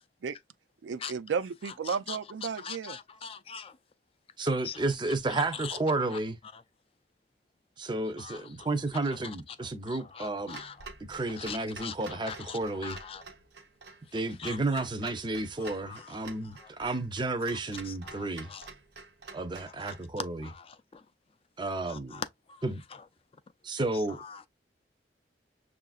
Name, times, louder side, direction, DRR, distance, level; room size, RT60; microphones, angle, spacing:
voice 1, 0.8-3.0, right 6 dB, 80° right, 0.4 m, -33 dB
voice 2, 1.9-2.2 2.6-3.7 4.7-4.8 5.3-5.8 6.1-6.2 8.2-8.5 9.9-10.8 11.4-13.2 14.4-14.6 15.6-16.1 16.6-16.7 17.9-18.7 19.8-19.9 20.4-21.0 21.9-22.6 24.2-24.4, left 7 dB, 30° left, 0.4 m, -42 dB
voice 3, 4.4-6.4 7.8-10.6 11.1-13.0 14.1-18.5 19.3-20.5 21.6-22.2 22.6-22.8 23.6-24.2, right 2 dB, 25° right, 0.6 m, -32 dB
Clock, 10.5-20.1, right 4 dB, 60° right, 0.8 m, -49 dB
6.4 x 2.5 x 2.3 m
head